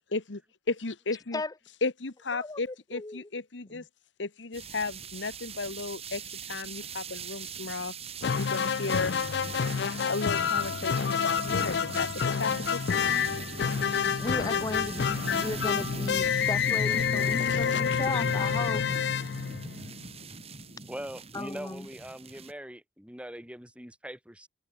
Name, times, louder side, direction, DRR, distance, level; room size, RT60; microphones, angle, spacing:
voice 1, 0.7-1.4 1.8-3.8 4.2-6.2 6.5-7.9 8.4-9.2 10.1-13.2 17.4-18.2, left 3 dB, 85° left, 1.3 m, -34 dB
voice 2, 2.3-3.3 3.7-3.8 14.0-15.1 15.3-18.8 21.3-21.9, left 2 dB, 20° left, 0.7 m, -36 dB
sound 1, 4.5-22.5, right 4 dB, 35° right, 4.1 m, -41 dB
sound 2, 8.2-20.1, left 7 dB, 65° left, 0.4 m, -28 dB
voice 3, 20.9-24.5, equal, 5° right, 2.7 m, -42 dB
head